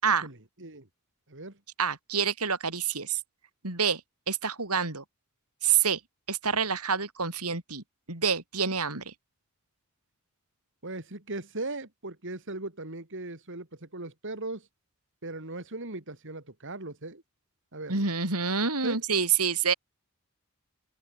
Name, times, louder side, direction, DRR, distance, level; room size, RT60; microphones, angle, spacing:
voice 1, 0.0-0.9 1.3-1.6 10.8-14.7 15.2-17.2 17.7-18.0 18.8-19.0, right 2 dB, 60° right, 4.0 m, -38 dB
voice 2, 1.8-3.2 3.6-4.0 4.3-5.0 5.6-6.0 6.3-9.1 17.9-19.7, right 6 dB, 85° right, 5.2 m, -27 dB
open air
head